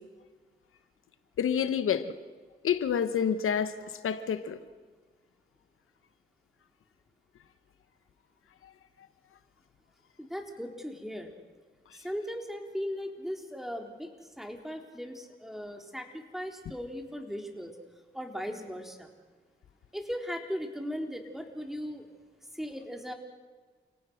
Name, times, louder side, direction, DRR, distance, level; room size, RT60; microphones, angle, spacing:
voice 1, 1.4-2.1 2.6-3.8 4.0-4.6, left 8 dB, 90° left, 11 dB, 1.0 m, -28 dB
voice 2, 10.2-11.3 11.9-14.1 14.4-17.7 18.1-19.1 19.9-22.1 22.5-23.1, equal, ahead, 3 dB, 4.1 m, -38 dB
29.0 x 17.5 x 6.4 m, 1.4 s
cardioid pair, 50°, 21 cm